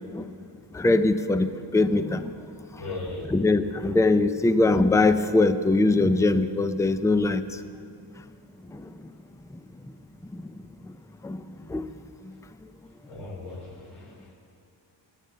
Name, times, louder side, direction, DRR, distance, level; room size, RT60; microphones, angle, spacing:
voice 1, 0.7-2.3 3.3-7.4 11.2-11.4 11.7-11.8, left 2 dB, 5° left, 10 dB, 0.5 m, -21 dB
voice 2, 2.8-3.2 13.1-14.3, left 2 dB, 80° left, -3 dB, 4.3 m, -37 dB
20.5 x 12.5 x 5.5 m, 2.5 s
wide cardioid pair, 130°, 45 cm